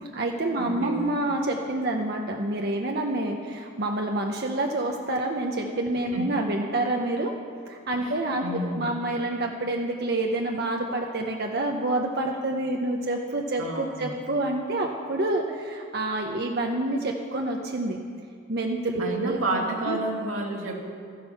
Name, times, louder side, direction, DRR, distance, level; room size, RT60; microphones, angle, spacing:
voice 1, 0.0-7.3 7.7-18.0 18.5-20.0, right 2 dB, 50° right, 1 dB, 0.8 m, -28 dB
voice 2, 0.6-1.1 6.1-6.3 8.0-8.1 8.4-8.9 13.6-14.1 19.0-20.9, right 1 dB, 85° right, 0 dB, 2.1 m, -30 dB
14.0 x 12.5 x 5.7 m, 2.2 s
head